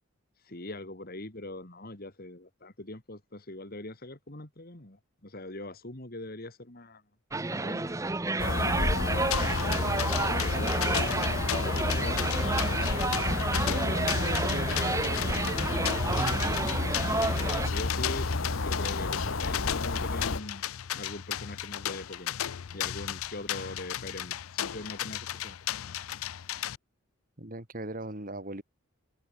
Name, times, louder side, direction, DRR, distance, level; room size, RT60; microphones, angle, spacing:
voice 1, 0.4-7.0 7.5-8.0 8.6-12.3 17.3-18.3 18.6-20.6 20.9-22.4 22.7-25.6, left 2 dB, 45° left, 2.6 m, -42 dB
sound 1, 7.3-17.7, right 3 dB, 15° right, 0.6 m, -31 dB
sound 2, 8.4-20.4, left 3 dB, 70° left, 1.1 m, -31 dB
sound 3, 9.3-26.8, left 11 dB, 85° left, 0.5 m, -35 dB
voice 2, 13.6-15.3 15.8-16.6 27.4-28.6, right 1 dB, 40° right, 2.9 m, -39 dB
head